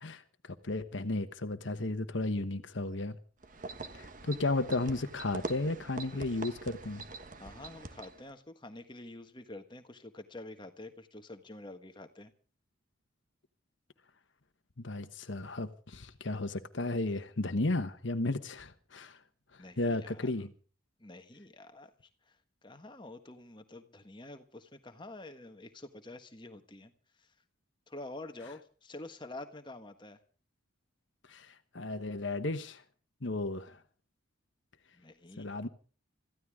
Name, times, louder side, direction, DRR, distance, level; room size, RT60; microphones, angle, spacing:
voice 1, 0.6-3.2 3.9-7.0 14.8-19.2 19.8-20.5 31.3-32.8 33.2-33.8 35.4-35.7, left 2 dB, 65° left, 1.2 m, -34 dB
sound 1, 3.4-8.3, right 3 dB, 40° right, 1.2 m, -44 dB
voice 2, 7.4-12.3 19.6-20.5 21.0-21.9 22.3-22.4 22.6-26.9 27.2-27.3 27.9-30.2 34.9-35.5, left 2 dB, 25° left, 1.5 m, -48 dB
26.0 x 15.0 x 3.7 m
head